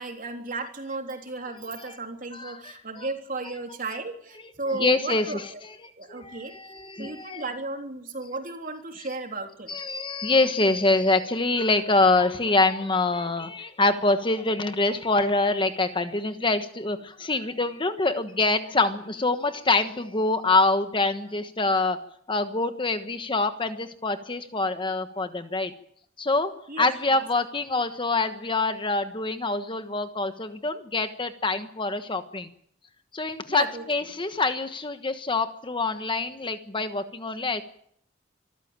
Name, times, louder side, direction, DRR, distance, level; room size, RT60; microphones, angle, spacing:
voice 1, 0.0-5.6 6.0-6.5 7.0-9.7 26.7-27.2 33.5-33.8, right 3 dB, 45° right, 4 dB, 3.5 m, -34 dB
voice 2, 2.3-3.1 4.8-5.4 6.1-7.4 9.7-22.0 22.3-25.7 26.2-26.5 26.8-32.5 33.1-37.6, left 3 dB, 25° left, 9 dB, 1.3 m, -25 dB
25.5 x 14.5 x 8.9 m, 0.68 s
head